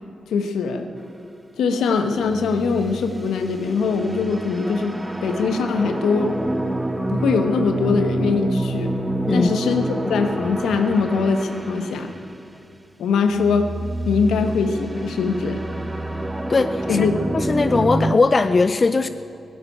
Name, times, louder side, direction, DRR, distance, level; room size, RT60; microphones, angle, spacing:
voice 1, 0.3-0.9 1.6-5.0 5.2-6.3 7.1-8.9 9.3-12.1 13.0-13.7 14.0-15.6 16.9-17.1, left 5 dB, 85° left, 7 dB, 1.1 m, -22 dB
sound 1, 2.1-12.4 13.3-18.1, right 1 dB, 15° right, 1.0 m, -27 dB
voice 2, 16.5-17.1 17.3-19.1, left 3 dB, 45° left, 12 dB, 0.5 m, -19 dB
16.0 x 8.5 x 9.9 m, 2.8 s
supercardioid pair, 45°, 0 cm